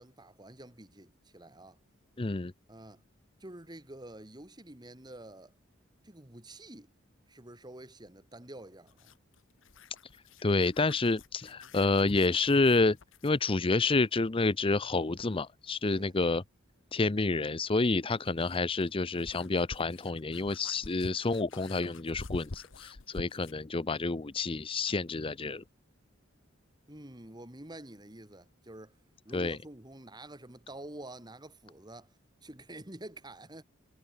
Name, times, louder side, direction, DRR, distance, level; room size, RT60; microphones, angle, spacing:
voice 1, 0.0-1.8 2.7-3.0 3.4-5.5 6.0-6.9 7.3-9.1 15.9-16.2 26.9-28.9 29.2-32.1 32.4-33.6, right 1 dB, 20° right, 2.5 m, -48 dB
voice 2, 2.2-2.5 10.4-13.0 13.2-16.4 16.9-25.6 29.3-29.6, left 3 dB, 25° left, 0.6 m, -29 dB
sound 1, 8.9-13.4 15.8-15.9 17.8-23.7, left 3 dB, 70° left, 1.1 m, -48 dB
head